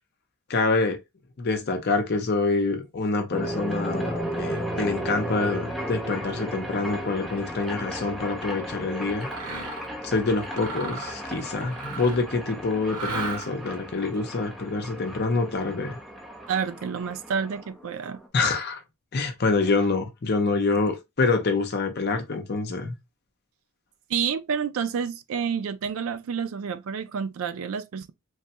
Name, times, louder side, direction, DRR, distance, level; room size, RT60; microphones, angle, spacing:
voice 1, 0.5-1.0 1.4-9.3 10.0-16.0 18.3-18.8 19.1-22.9, left 3 dB, 45° left, 0.6 m, -26 dB
sound 1, 3.3-18.3, equal, ahead, 0.5 m, -34 dB
Mechanisms, 9.2-9.9 10.4-12.3 12.9-13.7, right 4 dB, 90° right, 1.1 m, -36 dB
voice 2, 16.5-18.2 24.1-28.1, right 6 dB, 65° right, 0.3 m, -29 dB
3.2 x 2.2 x 2.7 m
head